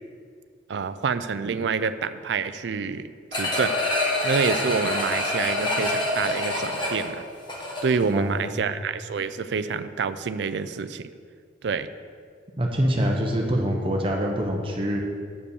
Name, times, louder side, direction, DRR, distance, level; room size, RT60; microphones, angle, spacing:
voice 1, 0.7-7.2 7.8-11.1 11.6-11.9, right 5 dB, 70° right, 12 dB, 0.4 m, -27 dB
sound 1, 3.3-8.1 8.5-8.6, left 1 dB, 25° left, 1.3 m, -26 dB
voice 2, 8.1-8.7 12.6-15.0, equal, 30° right, 0 dB, 0.9 m, -25 dB
8.1 x 5.2 x 7.0 m, 2.1 s
head